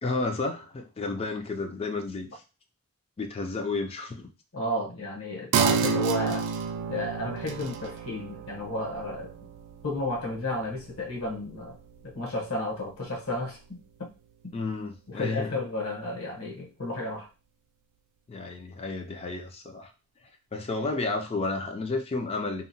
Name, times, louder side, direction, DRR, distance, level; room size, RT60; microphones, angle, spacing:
voice 1, 0.0-2.4 3.2-4.3 14.5-15.6 18.3-19.9 20.5-22.7, left 3 dB, 25° left, 5 dB, 0.3 m, -32 dB
voice 2, 4.5-6.5 6.9-9.5 9.8-11.8 12.0-14.1 15.1-17.3, left 1 dB, 65° left, -1 dB, 0.9 m, -32 dB
sound 1, 5.5-12.5 12.9-13.0, right 6 dB, 85° right, 0.3 m, -31 dB
2.8 x 2.1 x 2.6 m, 0.31 s
head